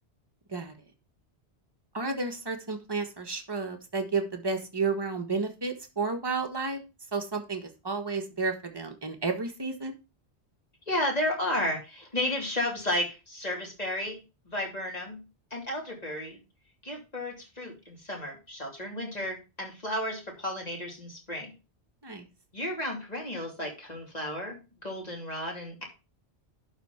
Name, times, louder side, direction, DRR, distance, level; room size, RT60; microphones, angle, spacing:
voice 1, 1.9-6.8 7.1-9.9 22.0-22.3, right 4 dB, 20° right, 4 dB, 1.4 m, -31 dB
voice 2, 10.9-14.2 14.4-15.2 15.5-16.4 16.8-21.5 22.5-25.8, left 1 dB, 35° left, 0 dB, 3.1 m, -33 dB
11.5 x 4.0 x 5.7 m, 0.29 s
omnidirectional pair, 1.1 m